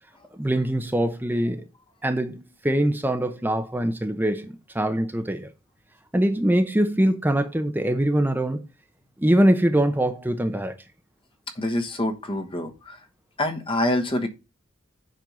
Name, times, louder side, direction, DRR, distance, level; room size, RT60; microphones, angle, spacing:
voice 1, 0.4-1.7 2.0-5.5 6.1-8.6 9.2-10.8, right 1 dB, 10° right, 0.7 m, -23 dB
voice 2, 11.5-13.0 13.4-14.3, left 1 dB, 25° left, 1.2 m, -26 dB
7.6 x 5.3 x 5.3 m
head